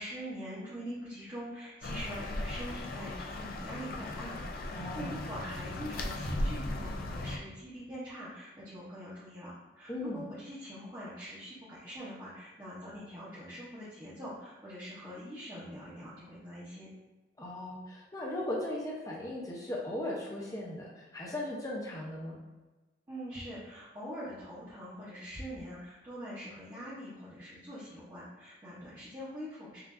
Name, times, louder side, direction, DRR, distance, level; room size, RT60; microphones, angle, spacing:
voice 1, 0.0-16.9 23.1-29.8, equal, 20° right, -11 dB, 0.8 m, -43 dB
sound 1, 1.8-7.4, left 1 dB, 50° left, 0.4 m, -37 dB
voice 2, 4.7-5.2 9.9-10.3 17.4-22.4, left 1 dB, 20° left, -3 dB, 0.7 m, -37 dB
5.5 x 2.6 x 2.6 m, 1.2 s
head